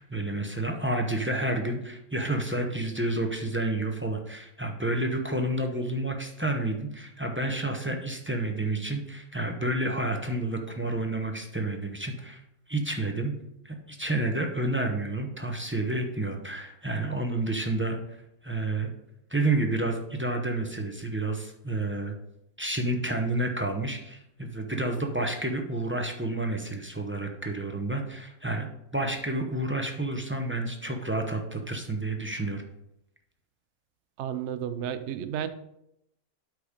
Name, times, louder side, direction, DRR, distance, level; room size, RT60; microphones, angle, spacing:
voice 1, 0.0-12.4 12.7-13.3 13.6-18.9 19.3-22.1 22.6-32.6, right 2 dB, 15° right, 0.5 m, -30 dB
voice 2, 34.2-35.5, right 9 dB, 60° right, 0.8 m, -32 dB
8.4 x 4.9 x 5.1 m
omnidirectional pair, 1.6 m